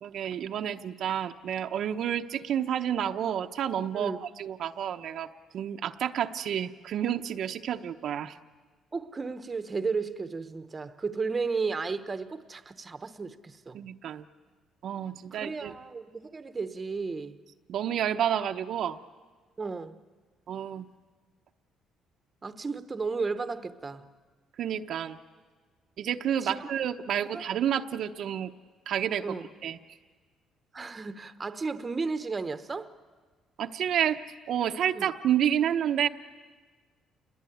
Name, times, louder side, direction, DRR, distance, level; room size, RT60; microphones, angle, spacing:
voice 1, 0.0-4.1 4.4-5.3 5.5-8.4 13.7-14.2 14.8-15.7 17.7-19.0 20.5-20.9 24.6-25.2 26.0-28.5 28.9-29.2 29.6-29.8 33.6-34.2 34.5-36.1, right 9 dB, 60° right, 0.8 m, -29 dB
voice 2, 8.9-13.8 15.3-17.4 19.6-20.0 22.4-24.1 26.4-26.7 27.3-27.5 29.2-29.5 30.7-32.9 34.9-35.1, right 4 dB, 20° right, 1.0 m, -34 dB
28.5 x 21.0 x 9.3 m
cardioid pair, 140°, 0 cm